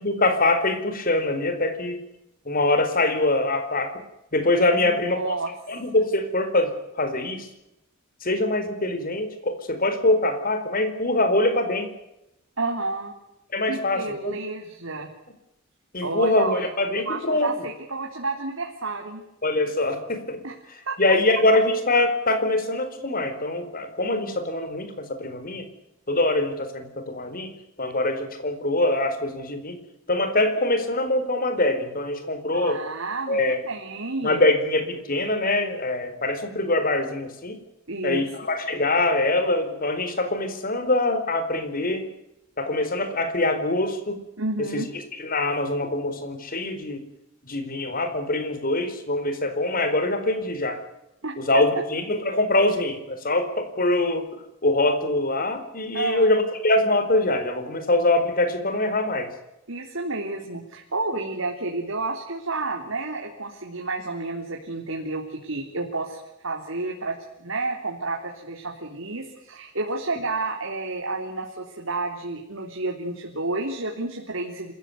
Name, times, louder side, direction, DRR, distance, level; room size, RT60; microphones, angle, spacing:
voice 1, 0.0-2.0 2.5-3.9 4.3-5.4 5.7-7.5 8.2-11.9 13.5-14.4 15.9-17.5 19.4-20.4 21.0-25.7 26.1-27.5 27.8-29.8 30.1-32.8 33.3-33.7 34.2-37.6 38.0-42.1 42.6-44.2 44.6-44.8 45.2-47.0 47.4-50.8 51.4-54.3 54.6-59.3, left 2 dB, 45° left, 9 dB, 4.4 m, -24 dB
voice 2, 4.8-5.5 12.6-13.1 13.7-15.1 16.0-16.6 17.1-19.2 20.4-20.5 20.9-21.0 32.5-34.4 37.9-38.3 44.4-44.9 51.2-51.6 55.9-56.3 59.7-74.7, right 3 dB, 80° right, 1 dB, 3.6 m, -30 dB
27.0 x 15.5 x 9.5 m, 0.87 s
head